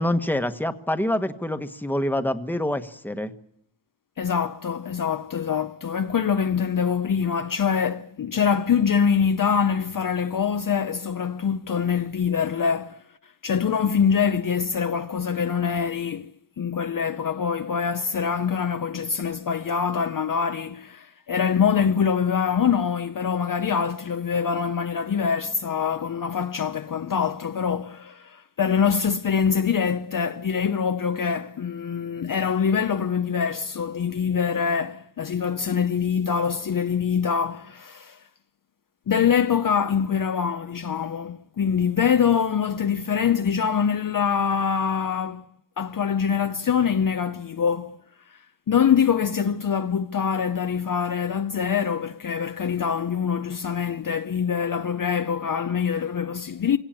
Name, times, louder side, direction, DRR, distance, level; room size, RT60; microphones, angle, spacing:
voice 1, 0.0-3.3, left 1 dB, 5° left, 1.4 m, -26 dB
voice 2, 4.2-13.0 13.4-16.3 16.6-38.2 39.1-45.5 45.8-48.0 48.3-48.4 48.7-56.8, left 7 dB, 45° left, 0.8 m, -24 dB
23.5 x 17.5 x 9.0 m
cardioid pair, 80°, 47 cm